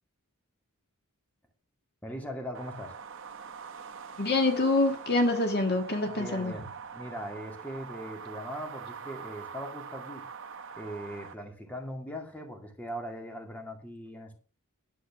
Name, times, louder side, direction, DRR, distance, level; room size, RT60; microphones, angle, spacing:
voice 1, 2.0-3.0 6.1-6.6 6.9-10.3 10.8-14.4, equal, 5° left, 2.3 m, -40 dB
sound 1, 2.5-11.3, right 6 dB, 60° right, 1.1 m, -44 dB
voice 2, 4.2-6.5, left 2 dB, 45° left, 1.7 m, -26 dB
11.0 x 8.1 x 6.0 m
head